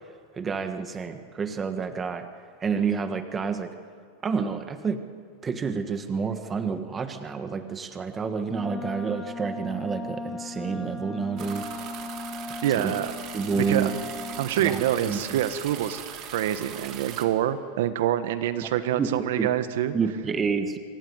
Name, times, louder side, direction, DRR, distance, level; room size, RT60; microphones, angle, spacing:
voice 1, 0.3-2.3 2.6-3.7 4.2-5.0 5.4-11.7 12.8-12.9 13.3-13.9 14.6-15.4 18.9-19.5 19.9-20.8, right 5 dB, 20° right, 9 dB, 1.5 m, -29 dB
Wind instrument woodwind instrument, 8.5-14.6, left 3 dB, 5° left, 2.9 m, -37 dB
sound 1, 11.4-17.3, right 9 dB, 40° right, 2.2 m, -40 dB
voice 2, 12.6-13.1 13.5-13.9 14.4-16.0 16.3-19.9, right 11 dB, 70° right, 12 dB, 1.4 m, -26 dB
25.0 x 17.0 x 9.6 m, 2.1 s
supercardioid pair, 140°, 0 cm